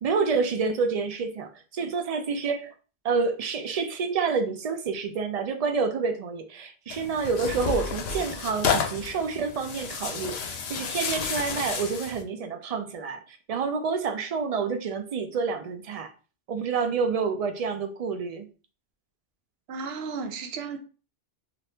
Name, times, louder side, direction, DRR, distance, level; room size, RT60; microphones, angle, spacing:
voice 1, 0.0-2.7 3.0-16.1 16.5-18.5, right 5 dB, 55° right, 0.4 m, -28 dB
Tearing, 6.9-12.2, left 6 dB, 75° left, 0.8 m, -31 dB
voice 2, 19.7-20.8, right 5 dB, 75° right, 0.8 m, -34 dB
2.7 x 2.4 x 3.3 m
omnidirectional pair, 1.1 m